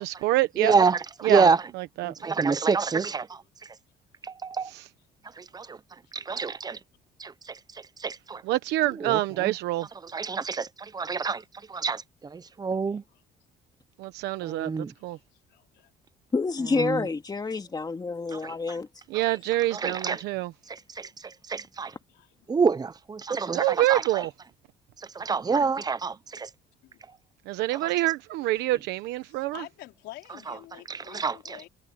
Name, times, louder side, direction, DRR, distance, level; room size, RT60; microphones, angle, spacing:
voice 1, 0.0-0.8 1.2-1.5 1.7-2.1 4.7-4.9 8.4-9.9 14.0-14.7 15.0-15.2 19.1-20.5 23.5-24.3 27.5-29.6, right 17 dB, 90° right, 1.0 m, -26 dB
voice 2, 0.6-1.6 2.0-3.4 4.2-4.7 5.4-5.8 6.1-6.8 7.2-7.6 8.0-8.4 9.0-9.5 10.1-11.4 11.7-13.0 14.4-14.9 16.7-17.1 18.3-18.5 19.7-20.2 20.7-21.9 22.5-24.2 25.1-26.5 31.1-31.6, right 5 dB, 25° right, 0.9 m, -27 dB
voice 3, 6.0-6.4 11.0-11.2 12.7-13.2 14.0-14.5 14.9-15.9 19.7-19.8 20.6-20.7 21.0-21.1 21.5-21.7 22.1-22.5 26.8-27.0 28.4-28.8 29.3-31.7, left 16 dB, 85° left, 4.7 m, -50 dB
voice 4, 16.3-18.9, left 4 dB, 25° left, 2.4 m, -28 dB
cardioid pair, 110°, 17 cm